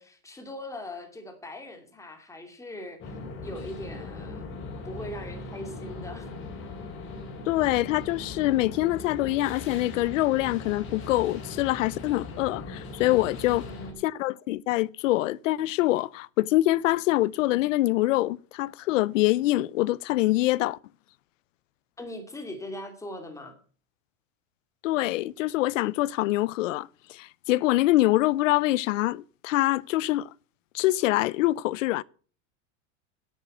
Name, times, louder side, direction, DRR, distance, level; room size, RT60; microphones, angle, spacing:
voice 1, 0.0-3.1 3.4-6.3 13.5-14.1 22.0-23.5, left 1 dB, 10° left, 2.6 m, -40 dB
sound 1, 3.0-13.9, left 3 dB, 30° left, 3.8 m, -39 dB
voice 2, 7.5-13.7 14.0-20.8 24.8-30.3 30.7-32.0, left 17 dB, 90° left, 0.7 m, -25 dB
10.0 x 8.3 x 7.8 m
supercardioid pair, 145°, 37 cm